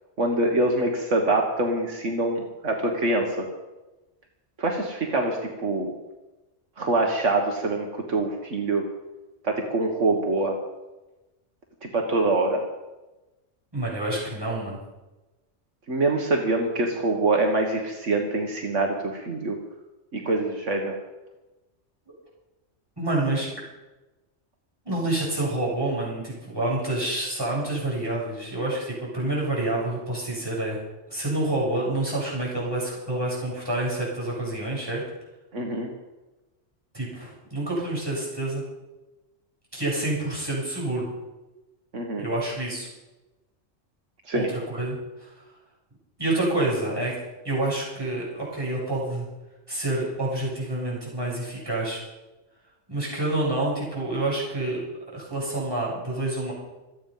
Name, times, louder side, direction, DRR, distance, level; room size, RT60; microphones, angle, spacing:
voice 1, 0.2-3.5 4.6-5.9 6.8-8.8 9.4-10.6 11.8-12.6 15.9-19.6 20.1-20.9 35.5-35.9 41.9-42.3 44.3-44.5, right 2 dB, 75° right, 2 dB, 2.0 m, -25 dB
voice 2, 13.7-14.8 23.0-23.5 24.8-30.8 31.1-35.0 36.9-38.6 39.7-41.1 42.2-42.9 44.3-45.3 46.2-47.1 47.4-49.3 49.7-52.0 52.9-54.8 55.1-56.5, right 2 dB, 20° right, -5 dB, 7.7 m, -28 dB
26.5 x 9.2 x 5.6 m, 1.1 s
omnidirectional pair, 1.3 m